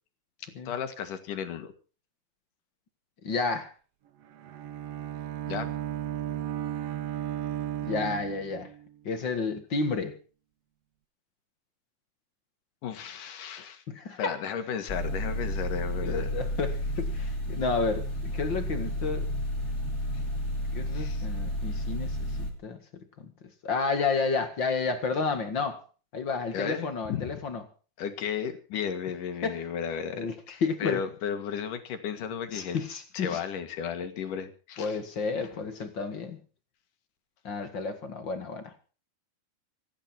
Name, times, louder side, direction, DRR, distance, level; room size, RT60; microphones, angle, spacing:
voice 1, 0.4-1.7 5.5-5.7 12.8-13.8 14.2-16.3 20.1-20.2 20.9-21.3 26.5-27.4 28.0-32.8 33.1-35.0, left 7 dB, 70° left, 8 dB, 3.3 m, -34 dB
voice 2, 3.2-3.7 7.8-8.7 9.0-10.2 13.9-14.4 16.0-19.3 20.7-22.3 22.6-23.3 23.6-25.8 26.1-27.6 29.4-29.6 30.1-30.3 30.6-31.0 32.5-33.4 34.8-36.4 37.4-38.7, left 4 dB, 40° left, 8 dB, 2.0 m, -31 dB
Bowed string instrument, 4.2-9.0, right 11 dB, 65° right, 1.5 m, -35 dB
sound 1, 14.9-22.5, equal, 20° left, 3.5 m, -31 dB
26.0 x 10.5 x 4.5 m, 0.37 s
omnidirectional pair, 4.0 m